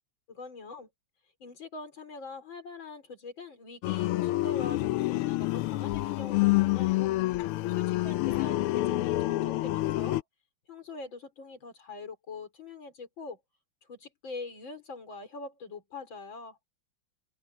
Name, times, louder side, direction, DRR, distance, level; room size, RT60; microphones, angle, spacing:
voice 1, 0.3-0.9 1.4-7.2 7.7-10.2 10.7-13.4 13.8-16.6, left 3 dB, 65° left, 4.9 m, -43 dB
sound 1, 3.8-10.2, left 18 dB, 90° left, 1.5 m, -27 dB
omnidirectional pair, 2.3 m